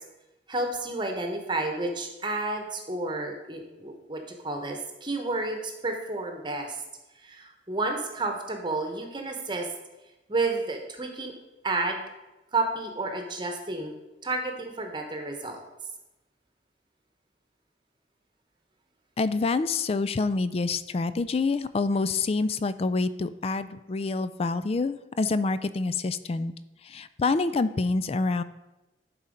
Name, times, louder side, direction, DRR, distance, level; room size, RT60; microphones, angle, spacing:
voice 1, 0.5-6.8 7.2-9.7 10.3-11.3 11.6-12.0 12.5-13.9 14.2-15.6, right 2 dB, 25° right, 4 dB, 1.0 m, -31 dB
voice 2, 19.2-26.5 26.8-28.4, left 3 dB, 35° left, 14 dB, 0.3 m, -27 dB
11.0 x 4.3 x 5.1 m, 1.0 s
head